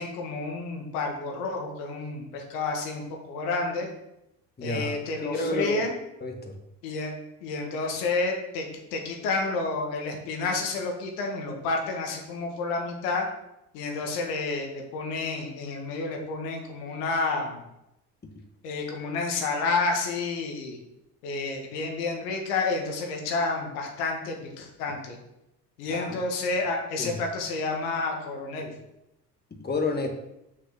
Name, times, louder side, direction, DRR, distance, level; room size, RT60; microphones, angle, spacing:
voice 1, 0.0-3.9 4.6-5.9 6.8-7.1 7.4-13.3 13.7-17.6 18.6-20.8 21.2-25.2 25.8-28.7, left 3 dB, 70° left, 2 dB, 1.8 m, -30 dB
voice 2, 4.6-4.9 5.2-5.8 6.2-6.5 25.9-26.2 27.0-27.1 29.6-30.1, left 2 dB, 20° left, 3 dB, 1.6 m, -29 dB
6.2 x 6.0 x 6.0 m, 0.87 s
hypercardioid pair, 60°, 48 cm